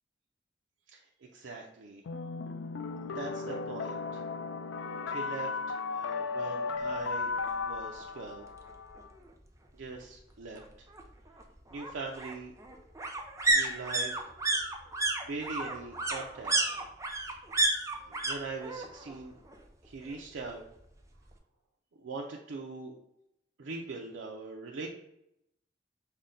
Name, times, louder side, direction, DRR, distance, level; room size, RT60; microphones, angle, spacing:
voice 1, 0.9-2.0 3.1-4.2 5.1-5.5 5.9-7.3 7.6-8.4 9.7-10.9 11.7-12.5 13.5-14.3 15.3-16.5 18.0-19.4 19.8-20.6 22.0-22.9 23.6-24.9, right 3 dB, 85° right, -1 dB, 0.5 m, -41 dB
sound 1, 2.1-9.1, left 4 dB, 80° left, 0.4 m, -36 dB
sound 2, 7.5-7.6 7.9-8.0 8.3-9.3 10.6-18.4 18.6-19.2 19.4-20.5 20.8-20.9, right 2 dB, 15° right, 0.5 m, -31 dB
5.3 x 2.1 x 3.7 m, 0.80 s
head